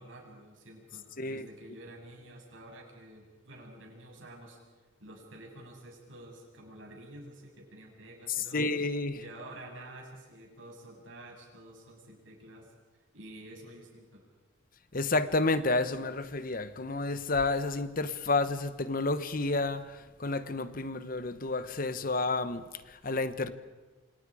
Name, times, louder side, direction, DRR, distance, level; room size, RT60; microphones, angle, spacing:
voice 1, 0.0-4.6 5.0-8.7 9.1-12.7 13.1-14.2, right 1 dB, 80° right, 7.2 m, -49 dB
voice 2, 8.4-9.2 14.9-23.5, left 3 dB, 45° left, 1.1 m, -30 dB
27.5 x 27.0 x 5.0 m
head